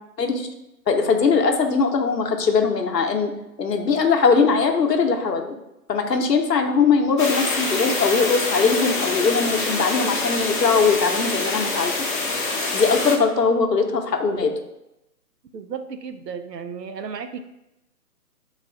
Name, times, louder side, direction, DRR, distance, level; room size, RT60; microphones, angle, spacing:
voice 1, 0.2-0.5 0.9-3.3 3.6-5.6 5.9-11.9 12.7-14.5, left 5 dB, 85° left, 3 dB, 0.9 m, -20 dB
sound 1, 7.2-13.2, left 3 dB, 30° left, 0.6 m, -25 dB
voice 2, 15.5-17.4, right 6 dB, 90° right, 7 dB, 0.6 m, -34 dB
3.9 x 2.4 x 4.4 m, 0.91 s
figure-of-eight pair, 145°, 47 cm